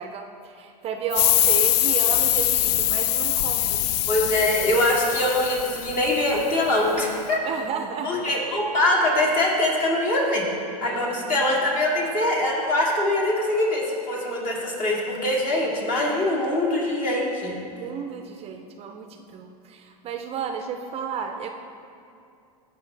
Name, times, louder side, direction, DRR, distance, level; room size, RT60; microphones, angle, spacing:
voice 1, 0.0-3.9 7.4-8.2 10.8-11.4 17.7-21.5, right 6 dB, 30° right, 5 dB, 0.5 m, -33 dB
sound 1, 1.1-6.4, left 13 dB, 75° left, 0.4 m, -23 dB
voice 2, 4.1-7.4 8.0-10.5 10.8-17.6, left 1 dB, 40° left, -3 dB, 2.2 m, -23 dB
14.5 x 5.5 x 3.3 m, 2.5 s
hypercardioid pair, 120°, 20 cm